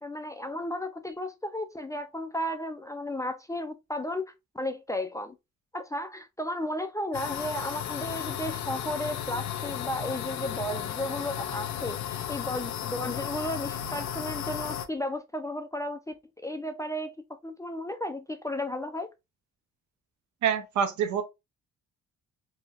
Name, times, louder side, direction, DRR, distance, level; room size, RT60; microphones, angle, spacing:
voice 1, 0.0-5.4 5.7-16.1 16.4-17.1 17.4-19.1, left 1 dB, 10° left, 0.3 m, -34 dB
sound 1, 7.1-14.9, left 10 dB, 70° left, 0.5 m, -34 dB
voice 2, 20.4-21.2, right 8 dB, 70° right, 0.7 m, -26 dB
2.8 x 2.8 x 2.4 m
cardioid pair, 90°, 30 cm